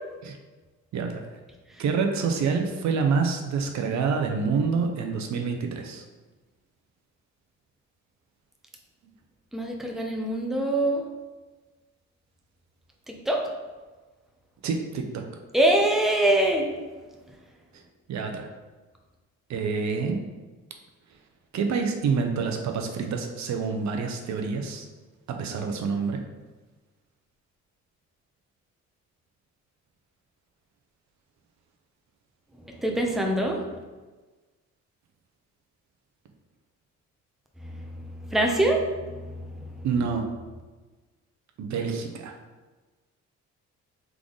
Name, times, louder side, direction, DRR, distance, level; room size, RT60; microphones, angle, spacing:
voice 1, 1.8-6.0 14.6-15.3 17.7-17.8 18.1-18.5 19.5-20.2 21.5-24.9 25.3-26.2 39.8-40.2 41.6-42.3, right 5 dB, 65° right, 4 dB, 0.6 m, -27 dB
voice 2, 9.5-11.0 13.1-13.4 15.5-16.7 32.7-33.8 37.6-39.7, right 1 dB, ahead, 1 dB, 0.7 m, -25 dB
3.7 x 3.4 x 3.8 m, 1.3 s
cardioid pair, 90°, 30 cm